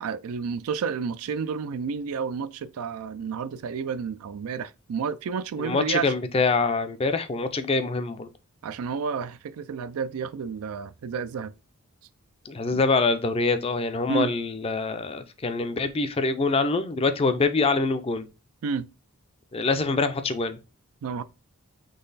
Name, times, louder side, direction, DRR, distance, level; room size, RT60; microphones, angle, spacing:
voice 1, 0.0-6.1 8.6-11.5 12.7-12.8 14.1-14.3 18.6-18.9 21.0-21.2, right 6 dB, 75° right, 0.4 m, -30 dB
voice 2, 5.6-8.3 12.5-18.3 19.5-20.6, left 3 dB, 25° left, 0.4 m, -25 dB
3.9 x 3.2 x 3.9 m
head